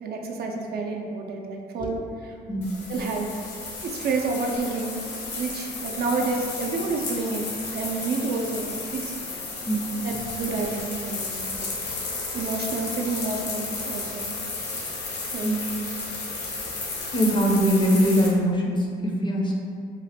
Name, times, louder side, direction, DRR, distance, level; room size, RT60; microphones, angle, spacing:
voice 1, 0.0-2.3 2.9-3.3 3.8-5.0 5.4-7.5 7.7-9.2 10.0-11.7 12.3-14.3 15.3-15.6, right 3 dB, 60° right, 1 dB, 0.4 m, -29 dB
sound 1, 2.6-18.3, left 3 dB, 65° left, 0.7 m, -33 dB
voice 2, 17.1-19.5, equal, 25° left, -1 dB, 0.4 m, -22 dB
3.1 x 2.1 x 2.8 m, 2.3 s
cardioid pair, 105°, 19 cm